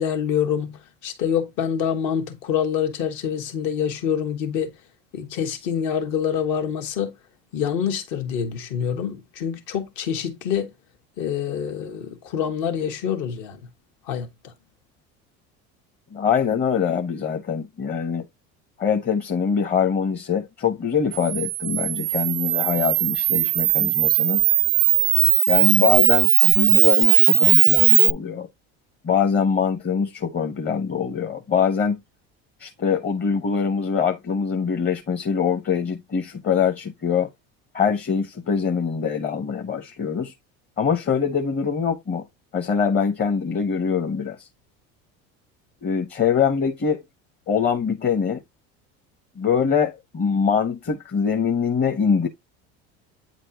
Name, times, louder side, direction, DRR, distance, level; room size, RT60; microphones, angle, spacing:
voice 1, 0.0-4.7 5.1-7.1 7.5-10.7 11.2-13.6 14.1-14.5, left 8 dB, 65° left, 1.7 m, -26 dB
voice 2, 16.1-18.3 18.8-24.4 25.5-28.5 29.0-32.0 32.6-37.3 37.7-40.3 40.8-42.2 42.5-44.5 45.8-47.0 47.5-48.4 49.4-52.3, left 6 dB, 35° left, 1.0 m, -23 dB
Camera, 21.1-28.1, right 21 dB, 75° right, 0.5 m, -18 dB
8.9 x 4.4 x 2.9 m
supercardioid pair, 105°, 31 cm